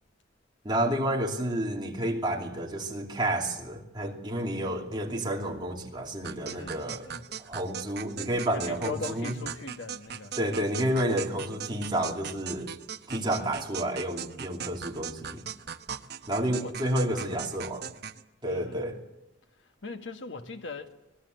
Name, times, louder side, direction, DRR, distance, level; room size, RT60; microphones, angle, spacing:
voice 1, 0.6-7.1 7.5-9.3 10.4-12.7 13.1-15.4 16.3-17.9 18.4-19.0, right 1 dB, 25° right, 2.8 m, -30 dB
sound 1, 6.2-18.2, right 8 dB, 60° right, 1.0 m, -39 dB
voice 2, 6.4-7.3 8.5-10.4 13.3-13.5 16.5-16.8 17.1-17.5 18.4-19.0 19.6-21.0, left 3 dB, 75° left, 1.7 m, -40 dB
25.5 x 18.5 x 8.0 m
head